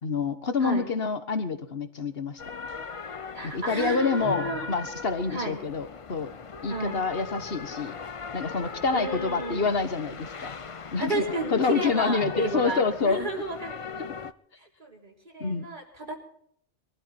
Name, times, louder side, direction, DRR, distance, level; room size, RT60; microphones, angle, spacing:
voice 1, 0.0-2.4 3.4-6.3 6.6-7.9 8.3-10.5 10.9-11.2 11.5-13.3 15.4-15.7, left 4 dB, 55° left, 9 dB, 1.6 m, -27 dB
sound 1, 2.4-14.3, left 5 dB, 35° left, 0.6 m, -39 dB
voice 2, 3.3-4.7 5.3-5.6 6.7-7.0 8.9-9.7 11.0-13.9 14.6-16.2, right 1 dB, 40° right, 0 dB, 3.9 m, -32 dB
23.0 x 13.0 x 4.4 m, 0.64 s
omnidirectional pair, 1.2 m